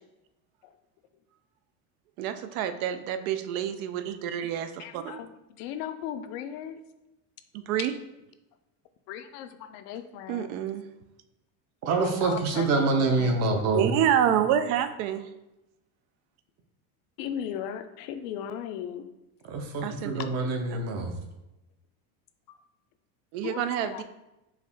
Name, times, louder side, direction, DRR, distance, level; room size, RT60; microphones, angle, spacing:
voice 1, 2.2-5.2 7.7-7.9 10.3-10.8 13.5-15.2 19.8-20.2 23.3-24.0, right 10 dB, 85° right, 10 dB, 0.5 m, -28 dB
voice 2, 4.8-5.3 5.6-6.8 9.1-10.6 12.0-13.4 17.2-19.1 22.5-22.6 23.4-24.0, left 9 dB, 65° left, 9 dB, 0.5 m, -37 dB
voice 3, 11.8-13.9 19.5-21.2, right 3 dB, 40° right, 4 dB, 0.6 m, -26 dB
4.7 x 2.5 x 3.4 m, 0.94 s
supercardioid pair, 145°, 41 cm